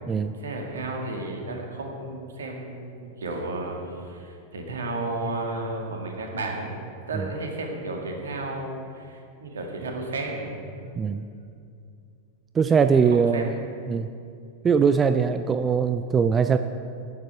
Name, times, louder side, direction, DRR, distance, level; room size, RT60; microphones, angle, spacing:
voice 1, 0.4-6.7 7.1-10.8 13.0-13.5, right 2 dB, 65° right, 1 dB, 1.9 m, -33 dB
voice 2, 12.5-13.6 13.9-14.1 14.6-16.6, right 6 dB, 20° right, 9 dB, 0.4 m, -21 dB
10.5 x 9.4 x 5.7 m, 2.5 s
figure-of-eight pair, 90°, 0 cm